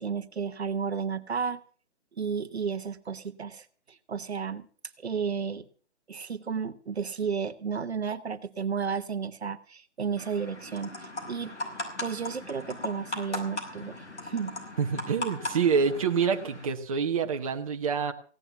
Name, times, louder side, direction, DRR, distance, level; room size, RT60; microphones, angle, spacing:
voice 1, 0.0-1.6 2.1-4.7 5.0-5.7 6.1-11.6 12.0-14.6, right 6 dB, 65° right, 12 dB, 1.0 m, -33 dB
sound 1, 10.2-16.6, left 1 dB, 75° left, 5.6 m, -38 dB
voice 2, 14.8-18.1, right 6 dB, 30° right, 5 dB, 1.1 m, -27 dB
16.5 x 9.9 x 6.8 m, 0.41 s
figure-of-eight pair, 155°, 35 cm